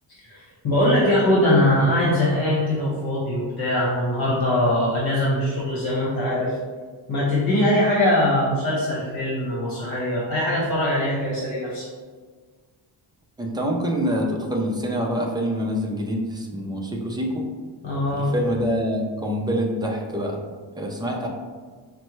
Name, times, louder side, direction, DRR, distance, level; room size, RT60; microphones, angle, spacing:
voice 1, 0.3-6.5 7.1-11.9 17.8-18.3, left 1 dB, 50° left, -6 dB, 1.2 m, -22 dB
voice 2, 13.4-17.5 18.1-20.4 20.8-21.3, equal, 10° right, -1 dB, 0.5 m, -26 dB
5.1 x 2.2 x 3.0 m, 1.5 s
cardioid pair, 110°, 49 cm